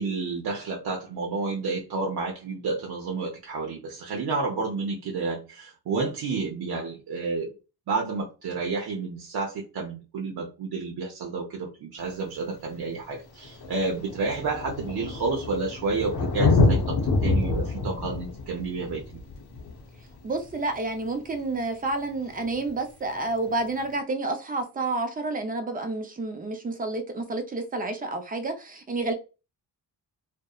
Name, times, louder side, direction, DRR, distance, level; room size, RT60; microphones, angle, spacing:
voice 1, 0.0-7.5 7.9-19.2, right 4 dB, 65° right, 0.7 m, -30 dB
Thunder, 12.1-12.2 13.1-13.2 13.4-20.8 22.4-22.5, left 3 dB, 70° left, 0.7 m, -26 dB
voice 2, 20.2-29.1, right 2 dB, 20° right, 0.5 m, -29 dB
2.6 x 2.1 x 2.3 m
cardioid pair, 100°, 40 cm